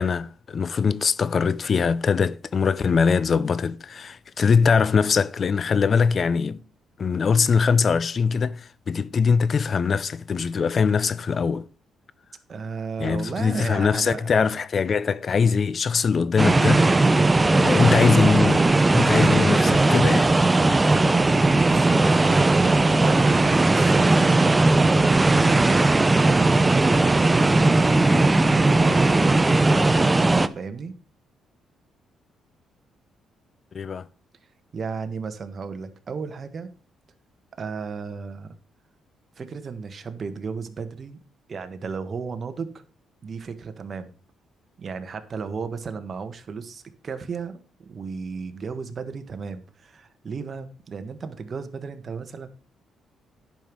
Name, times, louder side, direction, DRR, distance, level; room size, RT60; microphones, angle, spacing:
voice 1, 0.0-6.6 7.0-11.7 13.0-17.0 17.6-20.3 33.7-34.1, left 5 dB, 45° left, 0.5 m, -22 dB
voice 2, 12.5-14.6 21.6-25.9 26.1-29.5 29.9-30.1 30.5-30.9 34.7-36.7 37.6-38.5 39.4-41.2 41.5-42.7 43.2-44.1 44.8-52.5, right 5 dB, 45° right, 1.4 m, -34 dB
sound 1, 16.4-30.5, right 2 dB, 20° right, 0.7 m, -18 dB
10.5 x 5.4 x 6.2 m
cardioid pair, 90°, 0 cm